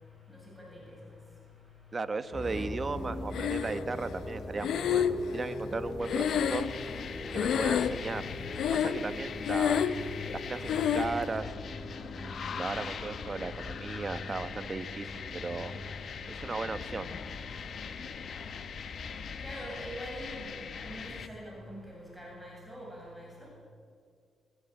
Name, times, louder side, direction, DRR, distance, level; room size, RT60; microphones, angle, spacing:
voice 1, 1.9-6.7 7.3-8.2 8.7-9.9 10.3-11.5 12.1-15.7 16.3-17.1, right 4 dB, 30° right, 11 dB, 1.2 m, -36 dB
sound 1, 2.3-21.8, left 2 dB, 40° left, 4.2 m, -43 dB
Breathing, 3.3-4.0 4.6-7.1 7.3-8.2 8.5-9.1 9.4-10.1 10.7-11.2, left 8 dB, 80° left, 0.9 m, -29 dB
sound 2, 6.0-21.3, left 6 dB, 60° left, 1.4 m, -41 dB
voice 2, 19.4-20.5 20.8-23.3, equal, ahead, -3 dB, 7.6 m, -43 dB
22.0 x 20.0 x 8.9 m, 2.2 s
cardioid pair, 105°, 0 cm